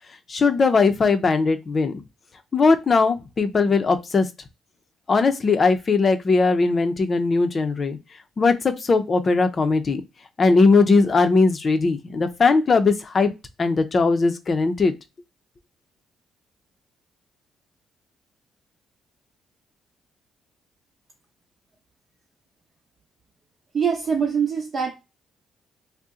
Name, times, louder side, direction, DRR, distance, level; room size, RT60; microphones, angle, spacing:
voice 1, 0.3-2.0 2.5-4.3 5.1-8.0 8.4-10.0 10.4-13.3 13.6-14.9, left 4 dB, 40° left, 0.6 m, -19 dB
voice 2, 23.7-24.9, right 6 dB, 45° right, 0.8 m, -23 dB
2.7 x 2.1 x 3.6 m
cardioid pair, 90°, 0 cm